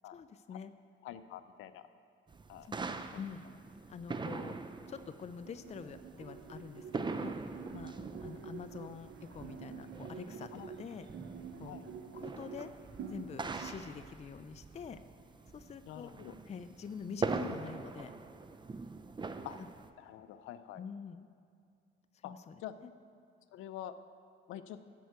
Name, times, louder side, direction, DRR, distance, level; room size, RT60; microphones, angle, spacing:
voice 1, 0.1-0.7 2.6-2.8 3.1-3.4 3.9-11.1 11.6-11.8 12.1-12.7 13.1-15.0 15.5-16.1 16.5-18.1 20.8-21.3 22.1-22.5 22.8-22.9, left 6 dB, 35° left, 10 dB, 0.4 m, -46 dB
voice 2, 1.0-1.9 2.5-2.7 3.1-3.2 10.5-10.7 11.7-11.8 15.9-16.4 19.4-19.6 20.0-20.8 22.2-22.3 22.6-22.7 23.5-23.9 24.5-24.8, left 11 dB, 85° left, 11 dB, 0.5 m, -46 dB
sound 1, 2.3-19.9, right 4 dB, 25° right, 0.5 m, -43 dB
sound 2, 4.8-13.7, right 6 dB, 70° right, 0.8 m, -48 dB
13.0 x 4.6 x 8.2 m, 2.3 s
cardioid pair, 90°, 20 cm